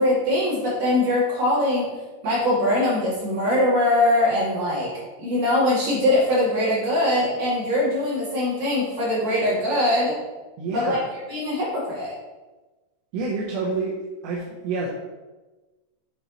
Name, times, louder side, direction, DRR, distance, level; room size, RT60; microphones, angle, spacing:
voice 1, 0.0-1.9 2.2-4.9 5.2-10.2 10.7-11.0 11.3-12.1, left 1 dB, 45° right, -8 dB, 3.1 m, -22 dB
voice 2, 10.6-11.1 13.1-13.9 14.2-14.9, right 4 dB, 75° right, -4 dB, 2.8 m, -28 dB
8.1 x 7.3 x 3.0 m, 1.2 s
omnidirectional pair, 5.6 m